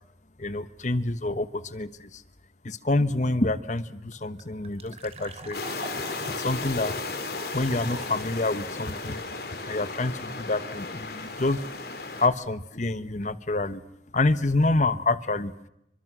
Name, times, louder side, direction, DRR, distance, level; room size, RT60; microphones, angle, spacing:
voice 1, 0.4-2.2 2.6-5.6 6.4-7.0 7.5-9.2 9.7-11.6 12.2-13.8 14.1-15.5, left 2 dB, 45° left, 14 dB, 1.2 m, -27 dB
sound 1, 3.5-3.6 3.7-3.8 4.1-8.2, right 2 dB, 35° right, 3.5 m, -43 dB
sound 2, 5.5-12.3, left 3 dB, 60° left, 3.8 m, -35 dB
29.5 x 25.0 x 6.2 m, 0.84 s
head